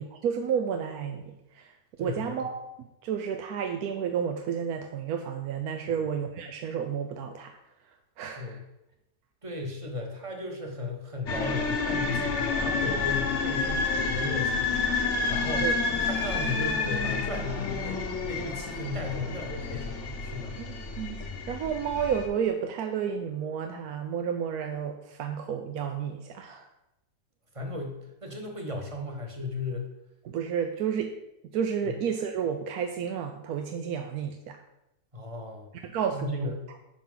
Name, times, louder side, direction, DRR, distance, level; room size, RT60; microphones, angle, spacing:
voice 1, 0.0-1.7 2.0-2.7 3.0-7.5 8.2-8.6 15.6-15.7 20.6-20.7 21.0-26.6 30.2-31.1 31.5-34.6 35.8-36.5, right 7 dB, 70° right, 4 dB, 1.0 m, -31 dB
voice 2, 9.4-20.5 27.5-29.9 31.8-31.9 35.1-35.7 36.1-36.6, left 2 dB, 20° right, 2 dB, 1.1 m, -35 dB
sound 1, 11.3-22.3, left 4 dB, 50° left, 1.2 m, -29 dB
10.0 x 5.9 x 3.9 m, 0.89 s
omnidirectional pair, 1.9 m